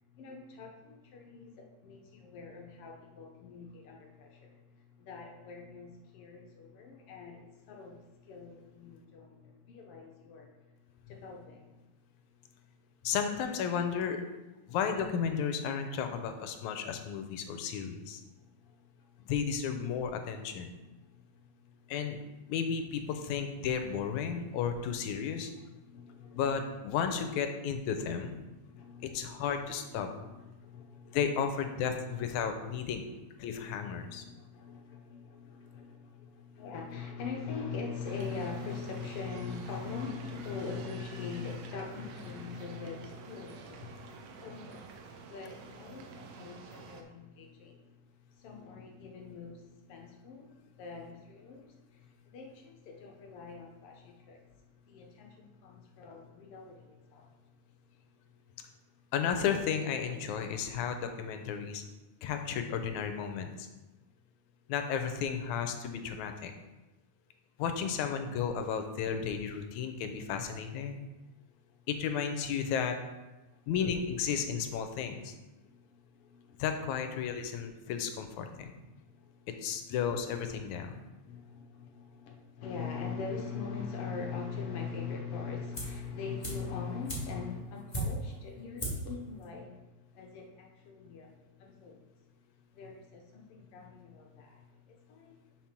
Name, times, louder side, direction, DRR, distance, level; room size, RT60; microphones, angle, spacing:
voice 1, 0.1-4.6 5.0-10.5 11.1-11.8 17.7-18.0 18.4-19.2 20.7-21.7 25.5-26.7 28.5-29.5 29.9-31.2 32.0-32.1 33.4-44.9 45.3-47.9 48.3-54.4 54.9-57.3 73.5-73.6 75.6-76.6 78.5-78.6 78.9-79.5 80.9-91.3 91.6-92.0 92.7-95.4, left 5 dB, 65° left, 1 dB, 1.5 m, -43 dB
voice 2, 13.0-14.2 14.7-18.2 19.3-20.7 21.9-22.2 22.5-25.5 26.3-28.4 29.1-30.1 31.1-33.0 33.4-34.2 59.1-61.8 62.2-63.7 64.7-66.5 67.6-71.0 71.9-73.0 73.7-75.3 76.6-78.8 79.6-81.0, left 7 dB, 80° left, 6 dB, 2.0 m, -33 dB
sound 1, 38.0-47.0, right 5 dB, 75° right, 1.7 m, -49 dB
sound 2, 85.7-86.1 86.4-88.4 88.8-89.1 89.4-89.5, right 1 dB, 15° left, 1.3 m, -36 dB
6.0 x 5.1 x 5.7 m, 1.1 s
omnidirectional pair, 3.5 m